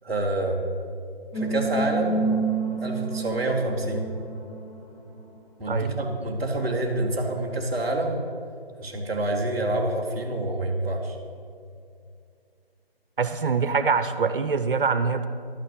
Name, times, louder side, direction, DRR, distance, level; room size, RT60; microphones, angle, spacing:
voice 1, 0.0-0.6 1.3-2.3 2.8-4.1 5.6-8.3 8.8-11.1, right 2 dB, 10° right, -7 dB, 0.8 m, -27 dB
sound 1, 1.3-5.2, right 3 dB, 35° left, 1.6 m, -29 dB
voice 2, 13.2-15.3, right 5 dB, 60° right, 10 dB, 0.8 m, -24 dB
12.0 x 6.5 x 7.9 m, 2.4 s
figure-of-eight pair, 155°, 30 cm